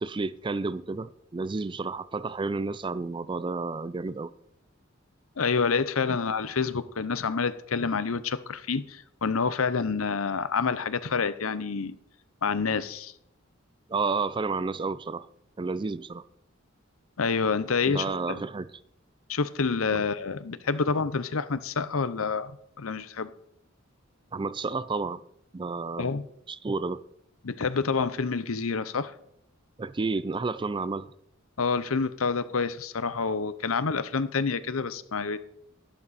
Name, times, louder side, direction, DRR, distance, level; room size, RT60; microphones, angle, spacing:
voice 1, 0.0-4.3 13.9-15.3 15.6-16.2 17.8-18.7 19.9-20.0 24.3-25.2 25.5-26.1 26.5-27.0 29.8-31.1, right 4 dB, 25° right, 0.4 m, -31 dB
voice 2, 5.4-12.0 12.4-13.1 17.2-18.4 19.3-22.5 22.8-23.3 26.0-26.3 27.4-29.1 31.6-35.4, left 5 dB, 90° left, 0.8 m, -28 dB
12.0 x 11.5 x 4.2 m
head